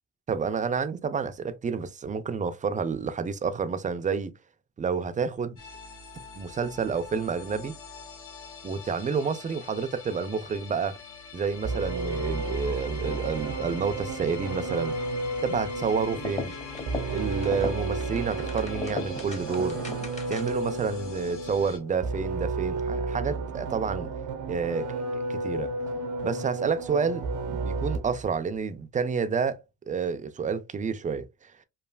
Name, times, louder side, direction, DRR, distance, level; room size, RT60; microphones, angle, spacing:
voice 1, 0.3-4.3 4.8-5.6 6.4-7.7 8.6-11.0 11.3-14.9 15.4-16.5 17.1-19.8 20.3-24.1 24.5-24.9 25.3-25.7 26.2-27.2 27.5-31.3, right 5 dB, 25° right, 0.3 m, -29 dB
sound 1, 5.6-21.8, left 4 dB, 70° left, 0.9 m, -43 dB
sound 2, 11.6-28.3, right 3 dB, 85° right, 0.7 m, -32 dB
sound 3, 16.1-20.7, left 3 dB, 25° left, 0.8 m, -37 dB
3.1 x 2.3 x 2.2 m
cardioid pair, 90°, 30 cm